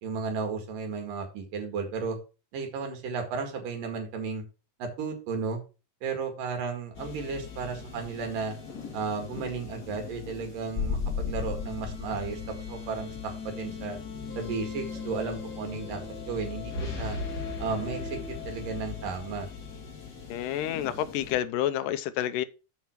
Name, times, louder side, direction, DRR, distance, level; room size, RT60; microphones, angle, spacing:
voice 1, 0.0-2.2 2.5-4.4 4.8-5.6 6.0-8.6 8.9-13.1 13.5-14.0 14.4-16.0 16.3-17.2 17.6-18.2 18.5-19.5, right 5 dB, 70° right, 3.6 m, -34 dB
sound 1, 6.9-21.4, left 5 dB, 35° left, 1.9 m, -37 dB
voice 2, 20.3-22.4, left 12 dB, 80° left, 2.1 m, -29 dB
7.5 x 5.7 x 5.9 m
omnidirectional pair, 4.0 m